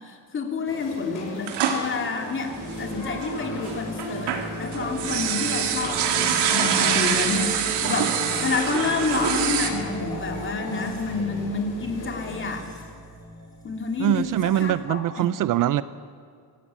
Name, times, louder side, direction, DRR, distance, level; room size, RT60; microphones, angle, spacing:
voice 1, 0.0-12.6 13.6-15.3, left 4 dB, 30° left, 3 dB, 2.9 m, -29 dB
sound 1, 0.6-12.6, left 2 dB, 50° left, 6.5 m, -40 dB
sound 2, 1.5-3.3 3.7-9.7, right 8 dB, 75° right, 2.6 m, -25 dB
sound 3, 2.5-14.8, equal, 10° left, 5.6 m, -37 dB
voice 2, 14.0-15.8, right 13 dB, 50° right, 16 dB, 0.6 m, -23 dB
23.0 x 15.5 x 9.8 m, 2.2 s
cardioid pair, 165°, 41 cm